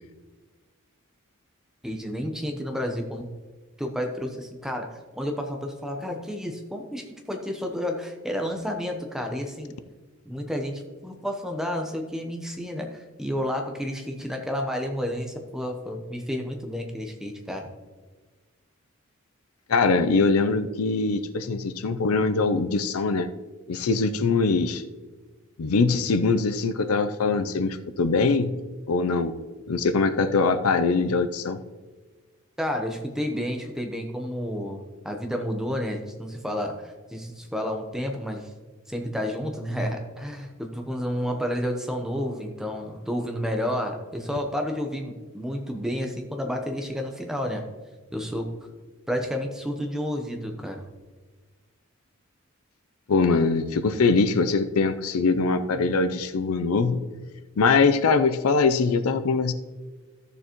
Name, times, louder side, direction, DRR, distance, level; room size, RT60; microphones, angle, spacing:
voice 1, 1.8-3.3 3.8-9.7 10.2-17.6 32.6-38.5 38.9-47.6 48.1-48.5 49.1-50.9, equal, ahead, 3 dB, 0.8 m, -31 dB
voice 2, 19.7-23.3 23.7-24.8 25.6-28.5 28.9-29.3 29.7-31.6 53.1-57.0 57.6-59.5, left 4 dB, 85° left, 11 dB, 0.5 m, -22 dB
14.0 x 6.8 x 3.0 m, 1.3 s
head